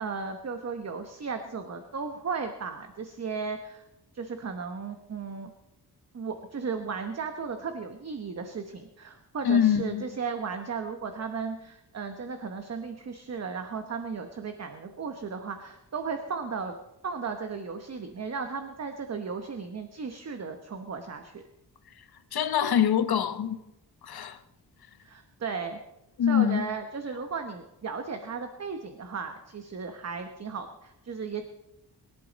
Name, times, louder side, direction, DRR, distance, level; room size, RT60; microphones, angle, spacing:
voice 1, 0.0-3.8 4.1-5.5 6.1-16.8 17.0-21.4 25.0-25.8 26.3-31.4, right 5 dB, 40° right, 1.0 m, -35 dB
voice 2, 9.4-10.0 22.3-23.6 24.0-24.4 26.2-26.7, left 9 dB, 65° left, 0.9 m, -24 dB
23.0 x 11.5 x 4.1 m
wide cardioid pair, 150°, 40 cm